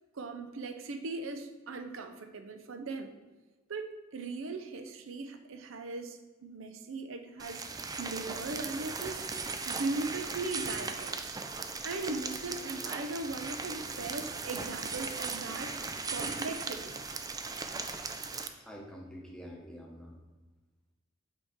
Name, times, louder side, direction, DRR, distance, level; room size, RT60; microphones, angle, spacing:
voice 1, 0.1-3.1 3.7-9.2 9.7-11.4 11.8-15.7 16.1-17.0, right 3 dB, 70° right, 7 dB, 0.6 m, -39 dB
sound 1, 7.4-18.5, right 4 dB, 20° right, 0.4 m, -38 dB
voice 2, 18.6-20.2, equal, 5° left, -1 dB, 1.0 m, -47 dB
8.0 x 4.6 x 3.6 m, 1.2 s
head